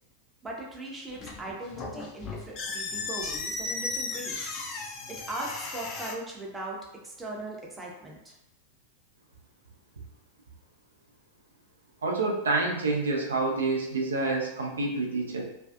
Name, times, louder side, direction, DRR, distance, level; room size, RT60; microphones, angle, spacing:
voice 1, 0.4-4.5 5.1-8.4, right 1 dB, 10° right, -2 dB, 0.6 m, -39 dB
sound 1, 1.1-6.1, left 3 dB, 35° left, 0.4 m, -35 dB
voice 2, 12.0-15.4, right 3 dB, 70° right, 0 dB, 0.5 m, -28 dB
2.5 x 2.3 x 2.3 m, 0.86 s
figure-of-eight pair, 90°, 0 cm